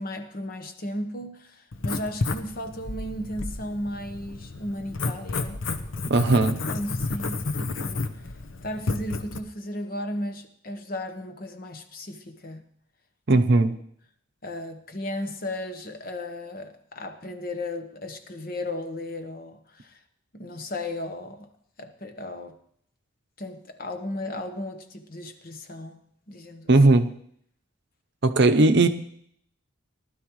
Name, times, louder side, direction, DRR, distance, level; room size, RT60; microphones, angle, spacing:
voice 1, 0.0-5.6 6.7-8.1 8.6-12.6 13.3-13.4 14.4-20.0 20.3-21.5 21.8-22.6 23.4-26.0 26.3-26.7, left 1 dB, 45° left, 1.0 m, -35 dB
Writing, 1.7-9.4, left 3 dB, 65° left, 0.9 m, -31 dB
voice 2, 6.1-6.6 13.3-13.8 26.7-27.1 28.2-28.9, right 2 dB, 55° right, 0.7 m, -18 dB
19.0 x 12.0 x 3.1 m
head